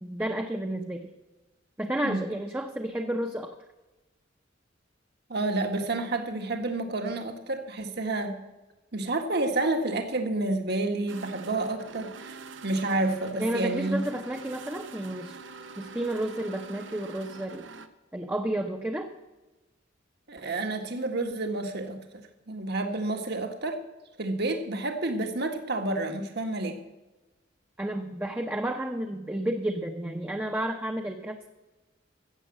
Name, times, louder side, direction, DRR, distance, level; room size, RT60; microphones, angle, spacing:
voice 1, 0.0-1.1 1.8-3.5 13.4-15.4 15.8-17.7 18.1-19.1 27.8-31.5, right 1 dB, 10° right, 3 dB, 0.8 m, -31 dB
voice 2, 5.3-8.4 8.9-14.0 20.3-22.0 22.5-23.8 24.2-26.8, right 2 dB, 60° right, 6 dB, 1.6 m, -29 dB
sound 1, 11.1-17.9, right 4 dB, 80° right, 1.0 m, -45 dB
15.0 x 7.4 x 7.5 m, 1.1 s
head